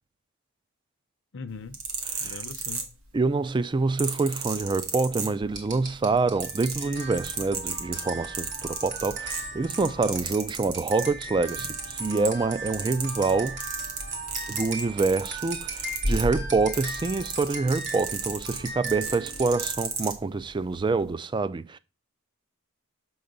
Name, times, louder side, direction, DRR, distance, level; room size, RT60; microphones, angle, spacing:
voice 1, 1.3-1.8 2.2-2.9, left 4 dB, 65° left, 0.7 m, -40 dB
sound 1, 1.6-3.3 4.0-5.7 6.1-11.1 11.5-12.5 12.7-20.2 20.9-21.1, right 5 dB, 90° right, 1.6 m, -34 dB
voice 2, 2.1-2.4 3.1-13.6 14.5-21.8, right 3 dB, 20° right, 0.3 m, -26 dB
sound 2, 5.5-20.0, right 2 dB, 60° right, 2.3 m, -36 dB
6.8 x 3.9 x 5.2 m
head